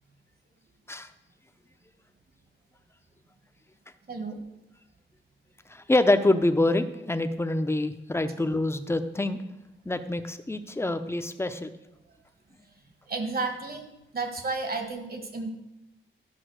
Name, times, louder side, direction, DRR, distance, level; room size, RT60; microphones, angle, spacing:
voice 1, 4.1-4.4 13.1-13.8 14.1-15.5, right 3 dB, 50° right, 5 dB, 1.6 m, -32 dB
voice 2, 5.7-9.4 9.9-11.7, left 2 dB, 10° left, 9 dB, 0.7 m, -26 dB
12.5 x 5.7 x 6.4 m, 0.96 s
wide cardioid pair, 105°, 20 cm